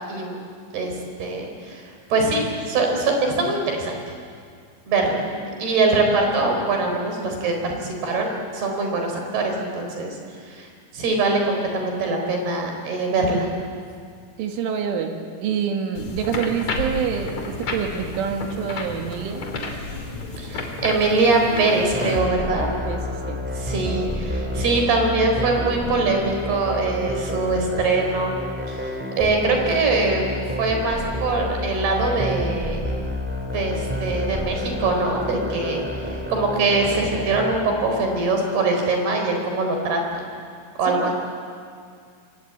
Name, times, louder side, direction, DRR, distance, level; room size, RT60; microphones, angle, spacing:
voice 1, 0.7-4.0 4.9-5.3 5.6-10.2 10.5-10.7 10.9-13.5 20.4-22.7 23.5-28.3 28.7-30.3 30.6-32.9 33.5-35.8 36.3-40.2 40.8-41.1, right 3 dB, 55° right, 2 dB, 6.0 m, -23 dB
voice 2, 14.4-19.4 22.5-23.4 40.9-41.1, right 7 dB, 75° right, 4 dB, 4.3 m, -27 dB
sound 1, 15.9-22.2, left 3 dB, 40° left, 3.4 m, -31 dB
sound 2, 21.9-37.6, left 1 dB, 5° right, 1.5 m, -29 dB
28.0 x 24.0 x 8.8 m, 2.2 s
omnidirectional pair, 5.8 m